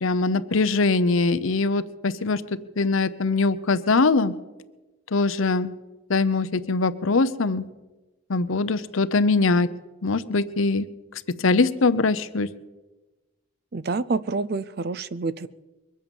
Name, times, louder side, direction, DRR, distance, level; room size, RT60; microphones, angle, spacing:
voice 1, 0.0-2.4 2.8-4.3 5.1-5.7 6.1-7.6 8.3-9.7 10.0-10.9 11.4-12.5, left 3 dB, 75° left, 14 dB, 0.8 m, -22 dB
voice 2, 13.7-15.5, right 3 dB, 50° right, 16 dB, 0.5 m, -27 dB
22.5 x 8.6 x 7.1 m, 1.2 s
head